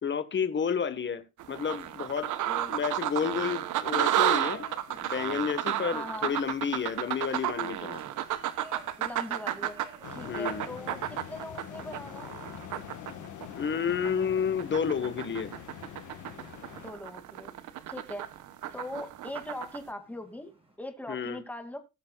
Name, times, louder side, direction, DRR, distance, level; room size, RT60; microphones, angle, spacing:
voice 1, 0.0-2.3 2.7-8.0 10.3-10.7 13.5-15.6 21.1-21.4, left 7 dB, 40° left, 1.4 m, -31 dB
sound 1, 1.4-14.3 14.6-19.8, right 12 dB, 80° right, 1.0 m, -32 dB
sound 2, 1.6-20.8, right 2 dB, 20° right, 5.1 m, -57 dB
voice 2, 2.4-2.8 5.9-6.3 9.0-12.4 16.7-18.3 18.7-21.8, left 1 dB, 5° left, 2.4 m, -41 dB
sound 3, 10.0-16.9, left 10 dB, 80° left, 1.5 m, -44 dB
19.5 x 6.6 x 2.3 m
cardioid pair, 90°, 30 cm